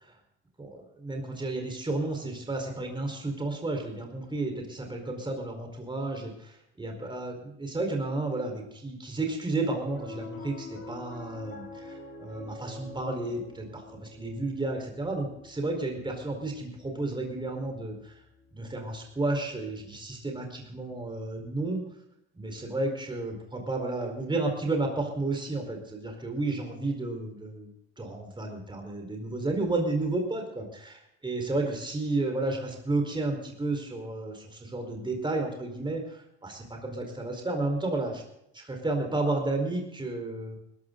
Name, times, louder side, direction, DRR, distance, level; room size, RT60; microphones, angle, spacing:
voice 1, 0.6-18.2 18.5-21.8 22.3-38.2 38.5-40.6, right 2 dB, 15° right, 3 dB, 4.6 m, -32 dB
Piano, 9.6-20.1, left 2 dB, 35° left, 7.5 m, -47 dB
20.5 x 14.0 x 4.0 m, 0.79 s
hypercardioid pair, 65°, 33 cm